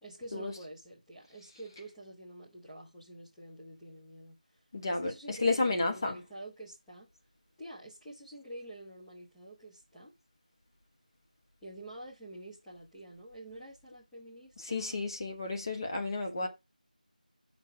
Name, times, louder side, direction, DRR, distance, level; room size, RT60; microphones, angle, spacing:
voice 1, 0.0-4.6 4.9-7.1 7.6-10.1 11.6-15.1 16.4-16.5, right 1 dB, 5° left, 0.6 m, -48 dB
voice 2, 4.7-6.2 14.6-16.5, left 3 dB, 30° left, 1.1 m, -32 dB
5.9 x 4.8 x 5.7 m
figure-of-eight pair, 175°, 5 cm